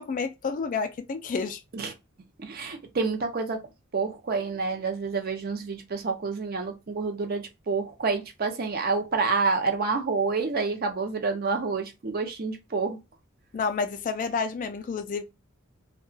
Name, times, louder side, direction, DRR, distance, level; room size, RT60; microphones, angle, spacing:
voice 1, 0.0-1.6 13.5-15.2, left 5 dB, 40° left, 0.3 m, -30 dB
voice 2, 2.4-3.6 3.9-13.0, right 4 dB, 45° right, 0.5 m, -28 dB
2.8 x 2.2 x 2.6 m
head